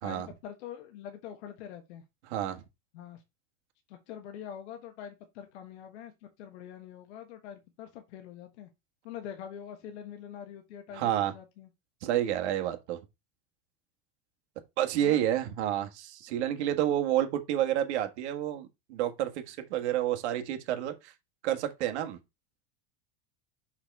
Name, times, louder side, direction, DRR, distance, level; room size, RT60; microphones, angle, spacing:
voice 1, 0.0-2.0 2.9-3.2 3.9-6.1 6.4-8.7 9.0-11.7 15.0-15.2, left 9 dB, 85° left, 1.4 m, -44 dB
voice 2, 2.3-2.6 10.9-11.3 12.0-13.0 14.8-21.1 21.4-22.2, right 11 dB, 85° right, 1.6 m, -29 dB
6.2 x 5.7 x 3.4 m
supercardioid pair, 160°, 33 cm